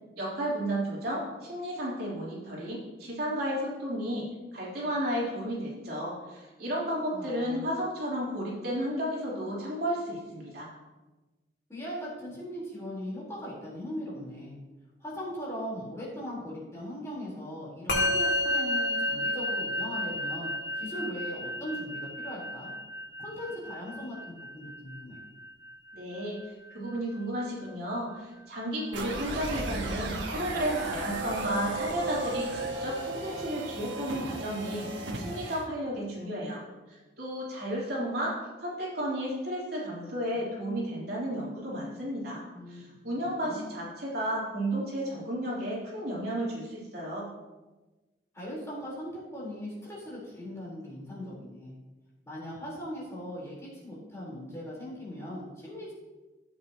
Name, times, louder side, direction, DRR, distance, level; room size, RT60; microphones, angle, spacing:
voice 1, 0.2-4.3 4.5-10.7 25.9-26.4 26.7-34.9 35.1-36.6 36.9-47.3, equal, 60° right, -6 dB, 3.6 m, -33 dB
voice 2, 7.1-7.6 11.7-14.6 15.0-22.7 23.2-25.2 42.5-42.9 43.2-43.7 48.3-51.7 52.2-55.9, equal, 15° left, -7 dB, 4.1 m, -39 dB
Musical instrument, 17.9-27.4, left 1 dB, 75° left, 3.5 m, -32 dB
sound 1, 28.9-35.6, right 2 dB, 80° right, 1.4 m, -35 dB
15.0 x 8.4 x 3.0 m, 1.1 s
head